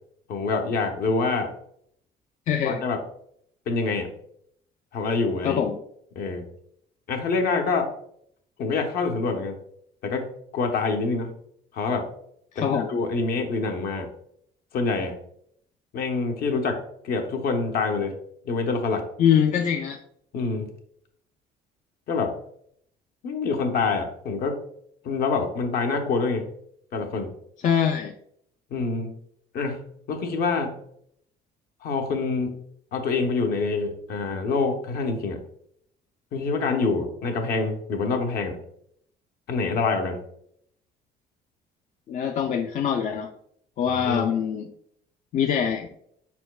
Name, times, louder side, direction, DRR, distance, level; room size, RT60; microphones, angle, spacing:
voice 1, 0.3-1.5 2.6-3.0 3.7-4.1 4.9-5.6 6.1-6.5 7.1-7.9 8.6-9.6 10.0-10.3 10.5-11.3 11.7-12.1 12.6-14.1 14.7-15.2 15.9-18.1 18.4-19.0 20.3-20.7 22.1-22.3 23.2-24.6 25.0-26.5 26.9-27.3 28.7-29.1 29.5-29.8 30.1-30.7 31.8-32.6 32.9-35.4 36.3-38.6 39.5-40.2 44.0-44.3, left 4 dB, 65° left, 4 dB, 0.8 m, -26 dB
voice 2, 2.5-2.8 5.4-5.8 12.5-12.9 19.2-20.0 27.6-28.1 42.1-43.3 43.8-44.7 45.3-45.9, left 8 dB, 45° left, 3 dB, 0.4 m, -23 dB
4.8 x 4.3 x 2.3 m, 0.69 s
cardioid pair, 110°, 17 cm